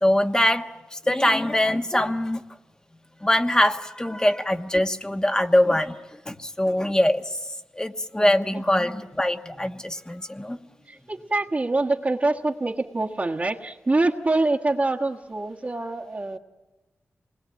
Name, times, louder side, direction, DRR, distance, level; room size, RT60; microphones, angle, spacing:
voice 1, 0.0-2.4 3.2-6.0 6.3-7.4 7.7-10.6, left 1 dB, 15° left, 7 dB, 1.3 m, -23 dB
voice 2, 10.9-16.4, right 2 dB, 35° right, -3 dB, 1.4 m, -25 dB
28.0 x 20.5 x 9.2 m, 1.1 s
cardioid pair, 65°, 5 cm